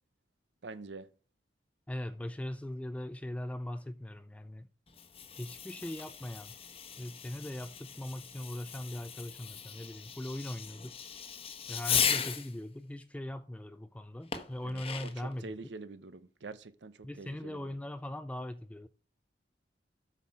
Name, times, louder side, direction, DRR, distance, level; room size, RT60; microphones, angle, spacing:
voice 1, 0.6-1.1 14.6-15.1 15.4-17.7, right 3 dB, 75° right, 0.7 m, -46 dB
voice 2, 1.9-4.7 5.4-6.5 7.0-11.0 11.7-15.6 17.0-18.9, left 1 dB, 5° left, 0.3 m, -40 dB
Fireworks, 4.9-12.5 14.3-15.3, left 7 dB, 35° left, 1.1 m, -37 dB
8.1 x 5.9 x 4.7 m
head